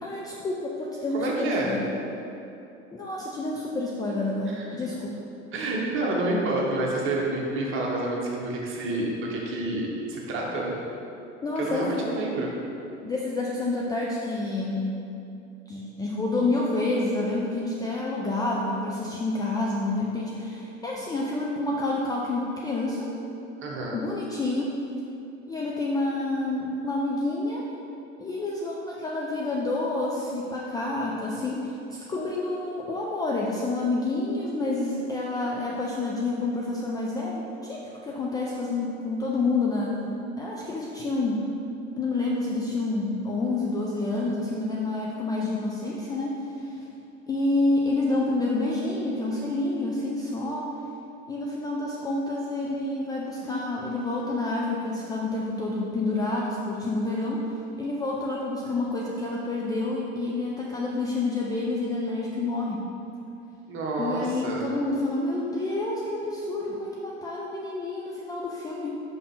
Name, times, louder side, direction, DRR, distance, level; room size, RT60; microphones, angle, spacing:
voice 1, 0.0-1.9 2.9-5.1 11.4-12.2 13.0-15.0 15.7-23.1 23.9-24.7 25.5-27.6 28.2-40.1 40.4-41.5 42.0-46.8 47.3-50.7 51.3-57.5 57.8-62.9 64.0-68.9, left 2 dB, 10° left, -3 dB, 0.4 m, -28 dB
voice 2, 1.1-1.7 4.5-4.8 5.5-10.7 11.6-12.5 23.6-24.0 63.7-64.7, right 2 dB, 35° right, -3 dB, 1.3 m, -28 dB
5.6 x 5.3 x 3.8 m, 2.8 s
figure-of-eight pair, 80°, 37 cm